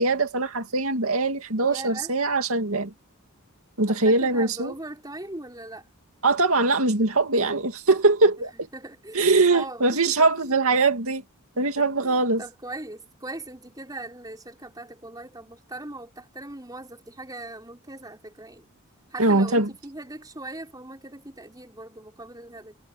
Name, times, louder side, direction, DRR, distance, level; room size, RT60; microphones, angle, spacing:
voice 1, 0.0-2.9 3.8-4.7 6.2-8.5 9.1-11.2 11.6-12.4 19.2-19.7, right 3 dB, 75° right, 2.3 m, -22 dB
voice 2, 1.6-2.1 3.9-5.9 8.4-10.6 11.5-18.6 19.1-22.8, right 2 dB, 15° right, 4.6 m, -40 dB
head